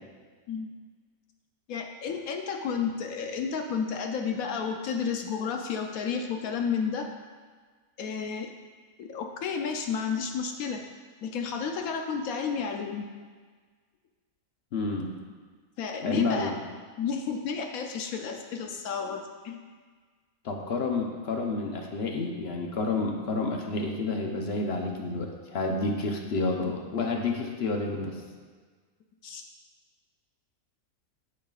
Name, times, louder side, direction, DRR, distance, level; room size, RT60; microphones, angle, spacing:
voice 1, 1.7-7.1 8.0-8.5 9.0-10.8 11.2-13.1 15.8-16.5 17.0-19.7 29.2-29.4, left 6 dB, 75° left, 3 dB, 1.0 m, -32 dB
voice 2, 14.7-15.1 16.0-16.6 20.4-28.2, left 3 dB, 55° left, 2 dB, 0.9 m, -29 dB
9.0 x 7.3 x 2.4 m, 1.5 s
omnidirectional pair, 1.5 m